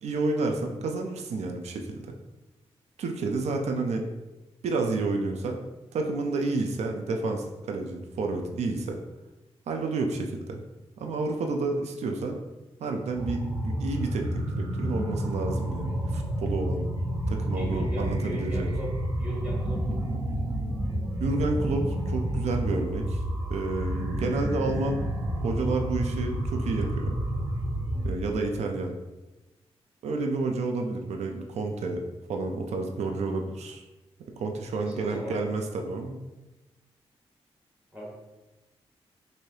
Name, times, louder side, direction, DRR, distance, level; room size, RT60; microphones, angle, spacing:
voice 1, 0.0-2.1 3.0-4.0 4.6-5.6 5.9-9.0 9.7-10.6 11.0-12.4 12.8-16.8 17.3-18.7 21.2-23.2 23.5-25.0 25.4-27.2 28.0-29.0 30.0-32.0 32.3-33.8 34.3-36.2, right 3 dB, 80° right, 3 dB, 0.4 m, -30 dB
sound 1, 13.1-28.1, right 1 dB, 45° right, 1.4 m, -30 dB
voice 2, 17.5-18.9 19.2-20.1 34.7-35.4 37.9-38.1, right 1 dB, 10° right, -4 dB, 1.2 m, -37 dB
3.2 x 2.6 x 2.7 m, 1.1 s
cardioid pair, 65°, 11 cm